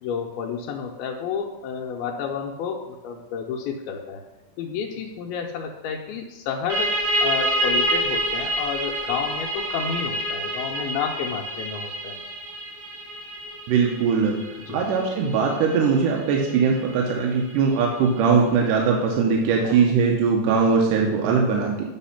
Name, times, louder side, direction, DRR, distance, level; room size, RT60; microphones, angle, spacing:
voice 1, 0.0-4.2 4.6-6.9 7.2-12.2 14.6-14.8 19.5-19.8, left 6 dB, 85° left, 1 dB, 2.5 m, -30 dB
sound 1, 6.7-18.1, right 1 dB, 55° right, 3.1 m, -28 dB
voice 2, 13.7-14.3 14.7-21.7, right 5 dB, 75° right, 0 dB, 2.1 m, -20 dB
8.3 x 4.1 x 5.6 m, 1.0 s
omnidirectional pair, 4.3 m